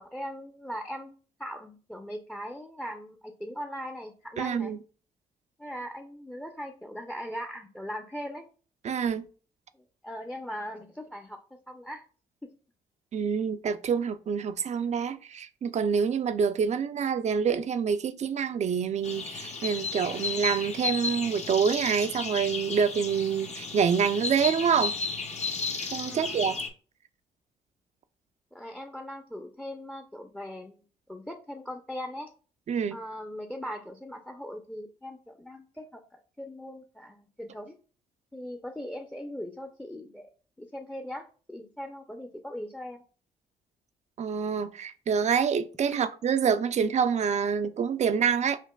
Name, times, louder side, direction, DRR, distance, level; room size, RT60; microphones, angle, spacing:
voice 1, 0.0-4.7 5.6-8.5 9.7-12.0 12.4-12.5 26.1-26.4 28.5-30.8 31.1-32.3 32.9-36.0 36.4-37.8 38.3-40.3 40.6-43.0, equal, 5° left, 0.6 m, -40 dB
voice 2, 4.4-4.8 8.8-9.3 13.1-24.9 25.9-26.6 32.7-33.0 44.2-48.6, right 6 dB, 45° right, 0.5 m, -27 dB
sound 1, 19.0-26.7, left 4 dB, 45° left, 0.8 m, -34 dB
5.8 x 2.4 x 2.3 m
supercardioid pair, 55°, 16 cm